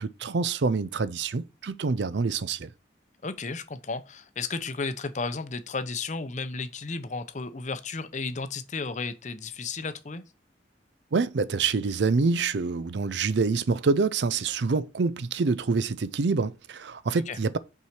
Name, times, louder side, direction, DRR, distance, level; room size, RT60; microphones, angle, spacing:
voice 1, 0.0-2.7 11.1-17.6, right 4 dB, 70° right, 0.5 m, -26 dB
voice 2, 3.2-10.2 17.1-17.4, left 4 dB, 40° left, 0.7 m, -33 dB
5.8 x 4.7 x 5.9 m
head